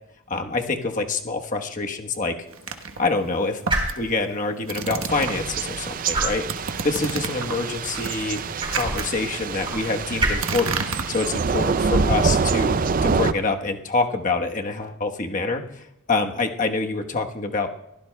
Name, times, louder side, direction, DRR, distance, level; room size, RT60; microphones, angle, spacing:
voice 1, 0.3-2.3 3.0-3.6 4.0-6.5 6.8-8.4 8.7-17.7, left 3 dB, 40° left, 3 dB, 1.1 m, -26 dB
sound 1, 0.7-14.2, right 2 dB, 25° right, 4.0 m, -34 dB
sound 2, 2.5-5.7 5.9-11.7, right 4 dB, 80° right, 1.2 m, -32 dB
Thunder / Rain, 5.1-13.3, right 5 dB, 40° right, 0.4 m, -26 dB
22.5 x 15.5 x 2.2 m, 0.85 s
head